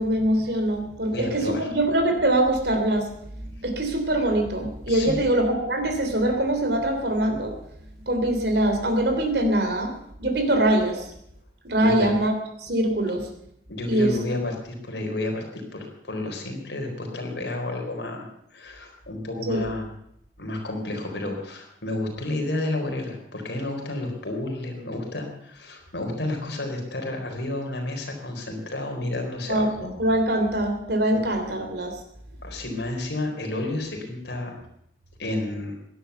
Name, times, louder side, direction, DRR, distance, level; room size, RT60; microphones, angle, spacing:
voice 1, 0.0-3.1 3.6-7.5 8.1-9.9 10.2-11.0 11.6-13.3 13.9-14.1 19.5-19.7 29.5-29.7 30.0-31.9, right 1 dB, 60° right, 4 dB, 3.3 m, -23 dB
voice 2, 1.1-1.7 4.9-5.2 11.8-12.2 13.7-19.9 20.4-29.9 31.1-31.2 32.4-34.6 35.2-35.7, left 2 dB, 65° left, 2 dB, 4.2 m, -31 dB
17.0 x 11.0 x 7.0 m, 0.74 s
head